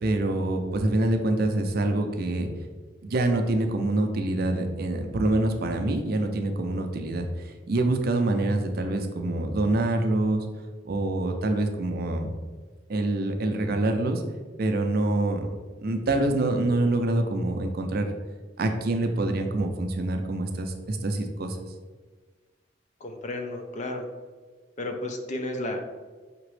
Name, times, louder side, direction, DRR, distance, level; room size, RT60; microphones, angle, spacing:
voice 1, 0.0-2.5 3.0-10.5 10.8-12.3 12.9-14.2 14.6-15.5 15.8-18.1 18.6-21.6, right 2 dB, 55° right, 5 dB, 0.5 m, -26 dB
voice 2, 23.0-24.0 24.8-25.9, left 1 dB, 40° left, 4 dB, 0.5 m, -32 dB
5.1 x 2.9 x 3.2 m, 1.4 s
head